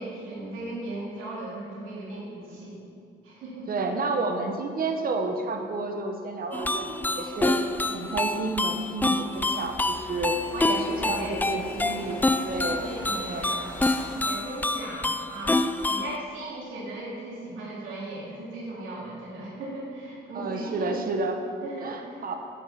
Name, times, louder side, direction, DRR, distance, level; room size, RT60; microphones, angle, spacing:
voice 1, 0.0-2.8 3.2-3.7 10.5-12.3 12.6-15.6 15.9-21.1 21.6-22.2, right 2 dB, 90° right, -5 dB, 2.6 m, -37 dB
voice 2, 3.7-10.4 10.7-13.5 20.3-21.4 21.8-22.3, right 3 dB, 45° right, 4 dB, 1.0 m, -31 dB
sound 1, 6.5-16.2, left 2 dB, 10° left, 0.4 m, -27 dB
sound 2, 9.3-14.3, left 1 dB, 45° left, 2.0 m, -43 dB
9.4 x 5.4 x 6.9 m, 2.4 s
cardioid pair, 90°, 20 cm